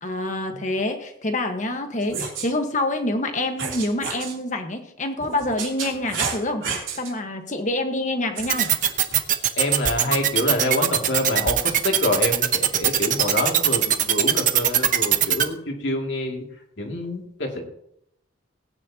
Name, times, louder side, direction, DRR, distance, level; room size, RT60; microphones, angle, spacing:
voice 1, 0.0-6.6 6.9-8.7, left 1 dB, 40° left, 5 dB, 1.4 m, -26 dB
sound 1, 2.0-2.5 3.6-4.3 5.2-7.1 8.3-9.2, right 5 dB, 90° right, 3.4 m, -31 dB
sound 2, 8.5-15.4, right 10 dB, 40° right, 0.8 m, -19 dB
voice 2, 9.6-16.4 16.8-17.6, left 2 dB, 65° left, 1 dB, 2.5 m, -26 dB
19.0 x 9.7 x 2.9 m, 0.75 s
head